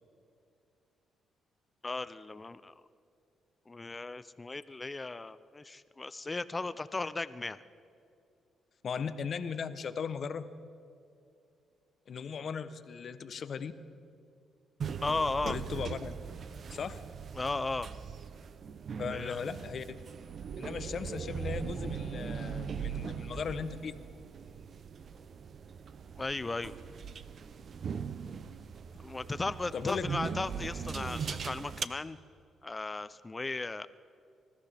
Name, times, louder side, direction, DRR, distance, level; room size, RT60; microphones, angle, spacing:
voice 1, 1.8-2.7 3.7-7.6 15.0-15.6 17.3-17.9 19.0-19.4 26.2-26.7 29.0-32.2 32.6-33.9, left 3 dB, 20° left, 14 dB, 0.4 m, -36 dB
voice 2, 8.8-10.5 12.1-13.7 15.4-16.1 16.7-17.0 19.0-20.0 20.6-23.9 29.7-30.1, left 6 dB, 55° left, 12 dB, 0.8 m, -37 dB
sound 1, 14.8-31.8, right 6 dB, 50° right, 0.6 m, -40 dB
26.0 x 14.0 x 3.4 m, 2.5 s
cardioid pair, 90°, 0 cm